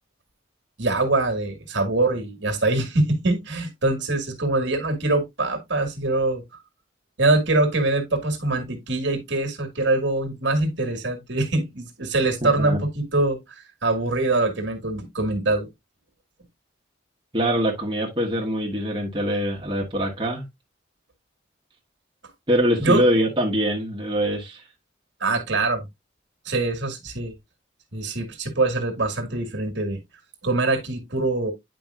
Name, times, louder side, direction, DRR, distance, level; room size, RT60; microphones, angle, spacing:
voice 1, 0.8-6.4 7.2-13.4 13.8-15.7 22.8-23.0 25.2-25.8 26.4-27.3 27.9-30.0 30.4-31.5, right 2 dB, 70° right, 1.8 m, -23 dB
voice 2, 12.4-12.8 17.3-20.4 22.5-24.6, equal, 25° right, 1.3 m, -23 dB
9.0 x 5.2 x 2.4 m
head